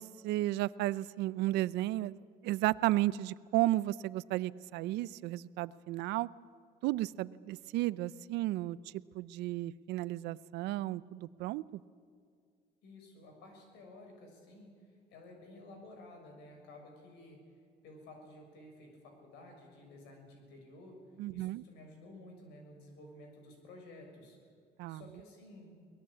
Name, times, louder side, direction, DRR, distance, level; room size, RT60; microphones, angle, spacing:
voice 1, 0.0-6.3 6.8-8.8 9.1-11.8 21.2-21.6 24.8-25.0, right 16 dB, 90° right, 18 dB, 0.6 m, -33 dB
voice 2, 12.8-17.4 17.8-21.0 21.3-24.4 24.9-25.7, left 1 dB, 90° left, 2 dB, 6.4 m, -53 dB
23.0 x 20.0 x 8.6 m, 2.2 s
cardioid pair, 110°, 17 cm